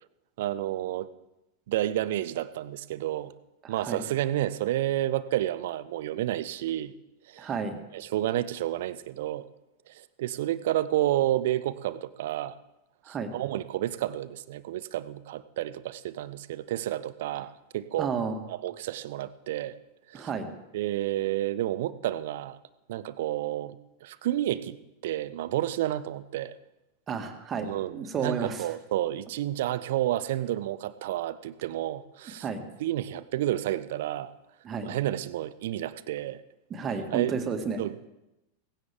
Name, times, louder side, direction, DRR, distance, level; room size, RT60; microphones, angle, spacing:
voice 1, 0.4-1.1 1.7-3.3 3.7-6.9 7.3-7.5 7.9-9.5 9.9-12.6 13.1-18.1 18.5-19.8 20.1-20.3 20.7-22.6 22.9-24.8 25.0-26.5 27.6-32.5 32.8-34.3 34.8-36.4 37.1-37.5 37.8-38.1, right 13 dB, 55° right, 17 dB, 0.7 m, -30 dB
voice 2, 7.4-7.8 13.0-13.3 18.0-18.4 20.1-20.5 27.1-28.7 32.4-32.6 34.6-35.0 36.7-37.8, right 5 dB, 25° right, 7 dB, 1.8 m, -32 dB
18.0 x 16.0 x 3.5 m, 0.95 s
figure-of-eight pair, 90°, 0 cm